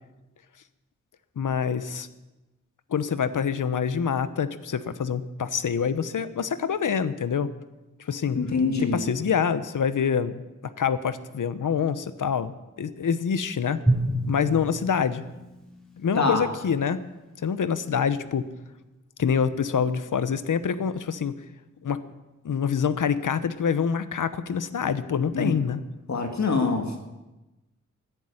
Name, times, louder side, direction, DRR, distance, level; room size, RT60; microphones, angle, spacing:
voice 1, 1.4-2.1 2.9-7.5 8.0-8.4 8.9-10.4 10.8-12.5 12.8-13.8 14.3-15.2 16.0-17.0 17.4-18.4 19.2-21.3 21.8-22.0 22.4-25.8, left 7 dB, 80° left, 13 dB, 1.0 m, -26 dB
voice 2, 8.3-9.0 16.2-16.4 25.3-25.5 26.1-26.9, left 4 dB, 65° left, 4 dB, 2.1 m, -24 dB
Drum, 13.9-16.8, right 1 dB, ahead, 6.1 m, -29 dB
14.0 x 10.0 x 9.8 m, 1.0 s
cardioid pair, 65°, 30 cm